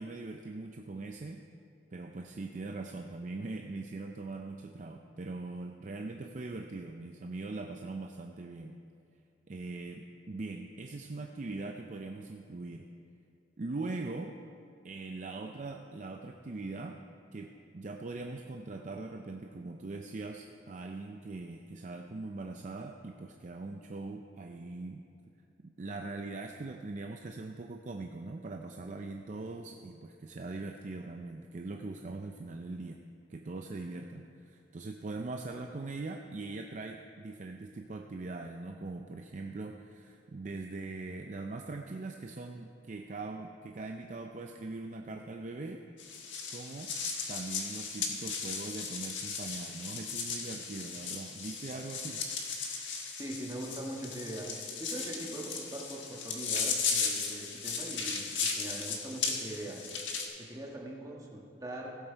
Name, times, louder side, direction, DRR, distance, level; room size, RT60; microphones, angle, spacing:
voice 1, 0.0-1.4 1.9-8.8 9.5-12.9 13.6-14.4 14.8-17.0 17.3-25.0 25.8-33.0 33.3-45.8 46.5-46.9 47.3-52.3, right 3 dB, 40° right, 4 dB, 0.4 m, -41 dB
sound 1, 46.0-60.3, left 5 dB, 80° left, 1.4 m, -36 dB
voice 2, 53.2-62.0, right 1 dB, 20° right, -2 dB, 1.5 m, -42 dB
16.5 x 7.9 x 4.5 m, 2.6 s
head